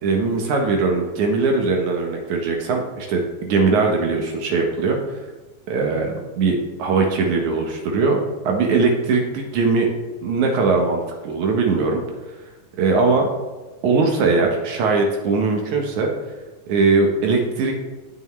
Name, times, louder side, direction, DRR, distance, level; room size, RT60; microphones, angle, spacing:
voice 1, 0.0-5.2 5.7-8.2 8.4-9.9 10.2-12.0 12.8-13.3 13.8-16.1 16.7-17.7, right 4 dB, 70° right, 1 dB, 2.1 m, -20 dB
18.0 x 6.3 x 3.1 m, 1.2 s
omnidirectional pair, 4.0 m